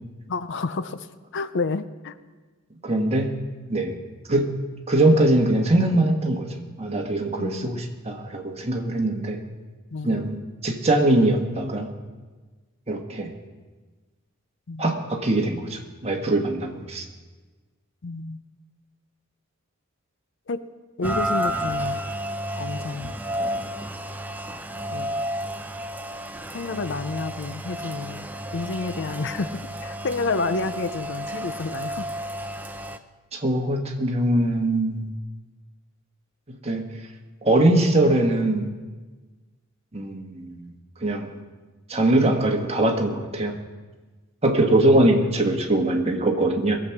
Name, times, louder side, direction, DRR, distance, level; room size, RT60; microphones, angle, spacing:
voice 1, 0.3-1.1 1.3-2.2 7.4-7.9 9.9-10.2 14.7-14.8 18.0-18.4 20.5-20.7 21.0-22.0 22.6-23.1 24.9-25.2 26.5-32.1 44.6-45.0, left 3 dB, 60° left, 12 dB, 0.6 m, -30 dB
voice 2, 2.8-3.3 3.7-3.9 4.3-4.5 4.9-9.4 10.0-10.4 10.6-11.9 12.9-13.3 14.8-17.0 33.3-35.1 36.6-36.8 37.4-38.7 39.9-40.7 41.0-41.3 41.9-43.5 44.4-46.8, right 1 dB, 30° right, 2 dB, 1.5 m, -22 dB
Rain, 21.0-33.0, equal, 10° right, 0.6 m, -31 dB
21.5 x 7.9 x 5.9 m, 1.3 s
head